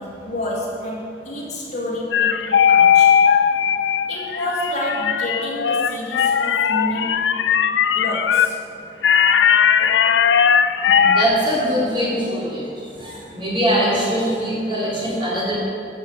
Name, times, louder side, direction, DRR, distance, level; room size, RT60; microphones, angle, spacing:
voice 1, 0.0-3.2 4.1-7.2 7.9-8.6 9.8-10.1, left 1 dB, 40° left, -5 dB, 2.5 m, -29 dB
sound 1, 2.1-8.5 9.0-11.3, left 8 dB, 90° left, 0.4 m, -17 dB
voice 2, 10.8-12.6 13.0-15.6, equal, 25° right, -6 dB, 3.1 m, -22 dB
11.5 x 6.9 x 6.6 m, 2.6 s
head